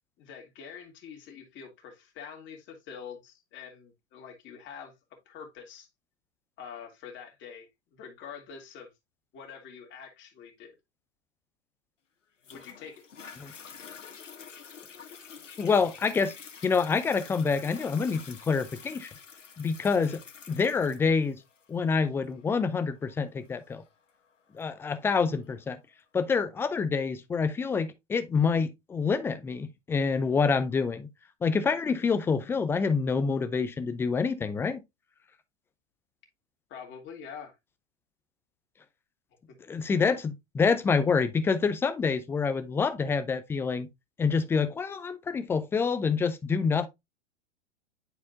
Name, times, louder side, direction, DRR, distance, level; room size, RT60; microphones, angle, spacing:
voice 1, 0.2-4.9 5.3-5.9 6.6-8.9 9.3-10.8 12.5-13.0 20.0-20.2 36.7-37.5, left 7 dB, 30° left, 2.3 m, -45 dB
Toilet flush, 12.4-25.5 26.1-26.2, left 6 dB, 85° left, 1.1 m, -48 dB
voice 2, 15.6-16.3 16.6-19.1 19.6-20.2 20.5-21.4 21.7-23.8 24.5-25.8 26.1-31.1 31.4-34.8 39.7-43.9 44.2-46.9, left 5 dB, 5° left, 0.4 m, -27 dB
9.7 x 4.3 x 2.6 m
hypercardioid pair, 105°, 36 cm